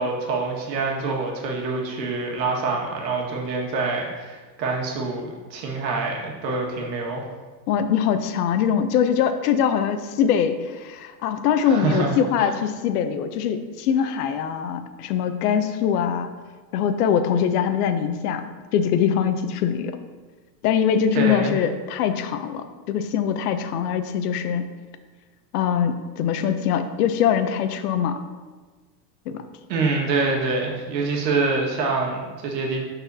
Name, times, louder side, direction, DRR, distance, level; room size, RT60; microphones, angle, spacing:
voice 1, 0.0-7.2 11.6-12.1 12.4-12.5 21.1-21.6 29.7-32.8, right 3 dB, 80° right, -1 dB, 1.7 m, -25 dB
voice 2, 7.7-16.3 16.7-18.4 18.7-20.0 20.6-24.6 25.5-28.2 29.3-29.4, left 8 dB, 65° left, 10 dB, 0.7 m, -23 dB
11.5 x 4.1 x 2.7 m, 1.4 s
supercardioid pair, 160°, 50 cm